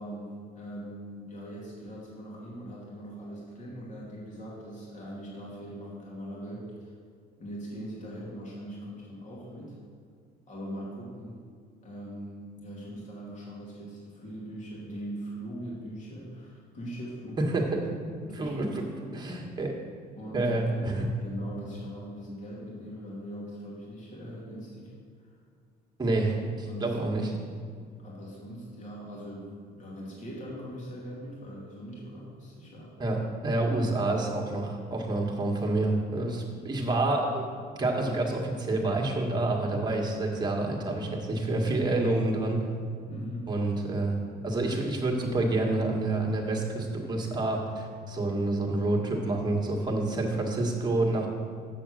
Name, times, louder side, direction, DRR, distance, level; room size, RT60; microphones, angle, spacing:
voice 1, 0.0-6.9 7.4-9.8 10.5-11.5 11.8-17.5 18.2-18.6 19.0-19.2 20.2-24.9 25.2-25.3 26.6-27.2 28.0-32.9 43.1-43.5, equal, 45° left, -5 dB, 2.6 m, -41 dB
voice 2, 18.3-19.7 20.3-21.1 26.0-26.4 26.8-27.3 33.0-37.5 37.8-42.6 43.5-44.2 44.4-51.3, right 2 dB, 25° right, 0 dB, 1.7 m, -28 dB
7.5 x 6.7 x 6.4 m, 2.1 s
cardioid pair, 110°, 17 cm